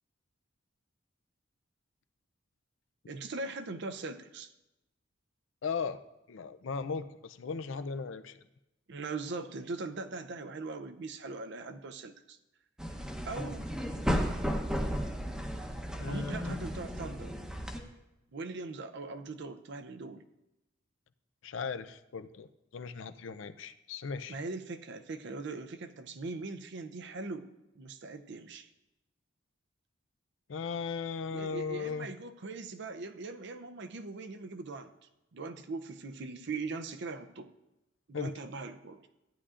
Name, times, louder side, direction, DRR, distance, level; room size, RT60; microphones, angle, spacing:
voice 1, 3.1-4.5 8.9-12.4 12.9-13.0 13.3-13.8 16.0-17.4 18.3-20.2 24.3-28.7 31.3-34.9 35.3-37.5 38.1-39.0, right 3 dB, 60° right, 8 dB, 0.6 m, -40 dB
voice 2, 5.6-6.0 6.3-8.4 16.0-16.6 21.4-24.4 30.5-32.1 38.1-38.3, left 5 dB, 70° left, 11 dB, 0.5 m, -37 dB
sound 1, 12.8-17.8, equal, 5° right, 0.8 m, -34 dB
14.5 x 9.9 x 2.5 m, 0.94 s
head